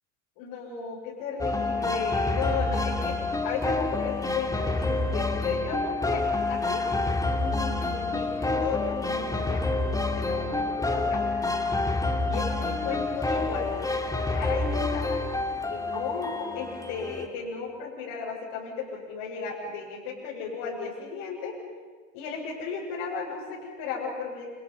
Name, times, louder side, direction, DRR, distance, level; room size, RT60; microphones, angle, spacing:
voice 1, 0.4-3.2 3.4-6.9 7.4-9.6 9.9-11.2 12.3-15.2 15.7-21.6 22.1-24.5, left 5 dB, 60° left, -5 dB, 7.4 m, -35 dB
sound 1, 1.4-17.3, left 2 dB, 10° left, 3.1 m, -28 dB
29.5 x 29.0 x 5.8 m, 1.5 s
hypercardioid pair, 75°, 40 cm